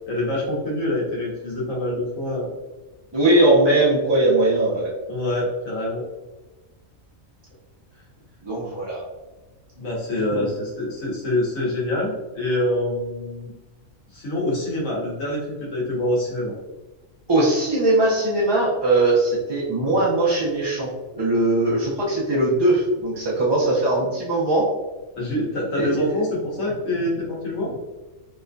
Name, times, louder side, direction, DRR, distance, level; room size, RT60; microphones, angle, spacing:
voice 1, 0.1-2.5 5.1-6.0 9.7-13.5 14.1-16.5 25.2-27.8, left 1 dB, 70° left, -5 dB, 1.4 m, -25 dB
voice 2, 3.1-4.9 8.4-9.0 10.3-10.5 17.3-24.7 25.8-26.2, right 2 dB, 40° right, -6 dB, 0.3 m, -20 dB
4.2 x 2.2 x 2.6 m, 1.1 s
omnidirectional pair, 1.4 m